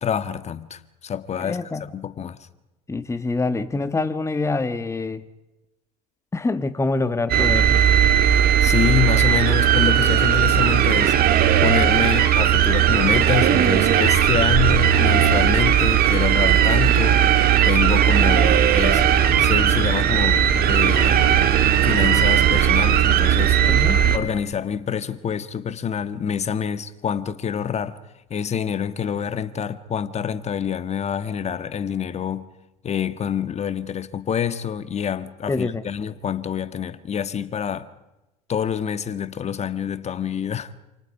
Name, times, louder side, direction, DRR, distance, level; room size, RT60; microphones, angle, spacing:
voice 1, 0.0-1.6 1.9-2.5 8.6-11.2 11.6-17.2 17.6-19.1 19.4-21.2 21.8-23.6 24.1-28.0 28.3-32.5 32.8-37.9 38.5-40.7, left 8 dB, 35° left, 1.5 m, -26 dB
voice 2, 1.4-1.9 2.9-5.2 6.3-7.8 23.7-24.0 35.5-35.8, left 3 dB, 15° left, 1.3 m, -25 dB
sound 1, 7.3-24.2, right 9 dB, 50° right, 2.6 m, -17 dB
28.5 x 28.0 x 4.9 m
hypercardioid pair, 75°, 20 cm